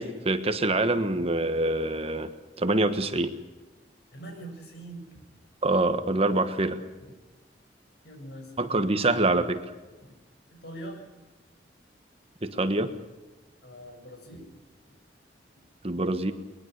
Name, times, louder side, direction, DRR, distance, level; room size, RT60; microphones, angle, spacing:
voice 1, 0.0-2.3 2.6-3.3 5.6-6.8 8.6-9.6 12.4-12.9 15.8-16.3, right 2 dB, 35° right, 9 dB, 1.4 m, -25 dB
voice 2, 4.1-5.2 8.0-8.7 10.5-11.1 13.6-14.5, right 1 dB, 65° left, 3 dB, 7.2 m, -42 dB
22.5 x 21.5 x 6.7 m, 1.2 s
head